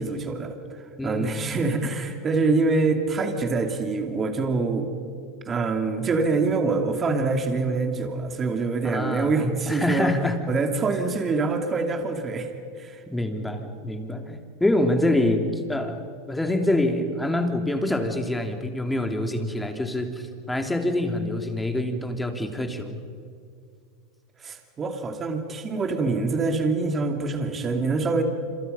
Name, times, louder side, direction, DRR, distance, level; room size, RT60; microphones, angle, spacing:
voice 1, 0.0-4.9 5.5-10.1 10.5-12.5 12.8-13.0 24.4-28.2, right 3 dB, 25° right, 4 dB, 2.7 m, -25 dB
voice 2, 1.0-1.5 8.8-10.3 13.1-16.0 16.3-23.0, left 1 dB, 5° left, 4 dB, 3.0 m, -26 dB
27.5 x 27.0 x 5.6 m, 2.3 s
supercardioid pair, 120°, 0 cm